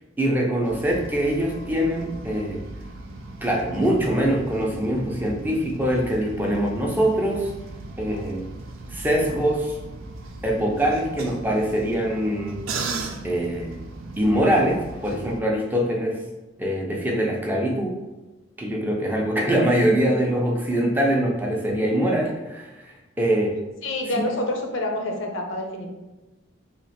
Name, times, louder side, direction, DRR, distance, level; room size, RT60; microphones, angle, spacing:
voice 1, 0.2-2.6 3.4-7.5 8.0-8.4 8.9-9.8 10.4-12.6 13.2-13.8 14.2-16.2 16.6-18.0 18.6-23.5 24.1-24.2, right 1 dB, 10° right, -1 dB, 0.5 m, -23 dB
sound 1, 0.6-15.4, right 3 dB, 85° right, 0.4 m, -37 dB
voice 2, 23.8-25.9, left 1 dB, 70° left, 3 dB, 0.6 m, -27 dB
2.9 x 2.4 x 4.1 m, 1.1 s
head